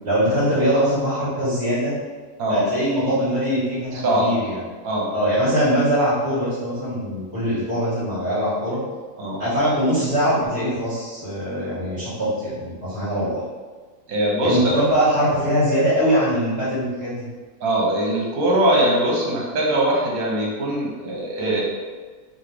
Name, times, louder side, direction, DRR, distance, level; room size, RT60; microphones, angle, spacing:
voice 1, 0.0-1.9 2.5-4.6 5.1-8.8 9.4-13.4 14.4-17.3, equal, 45° right, -13 dB, 1.4 m, -22 dB
voice 2, 3.9-4.3 4.8-5.1 9.2-9.4 14.1-14.8 17.6-21.6, right 1 dB, 75° right, -4 dB, 1.4 m, -21 dB
4.2 x 2.4 x 3.3 m, 1.4 s
omnidirectional pair, 1.6 m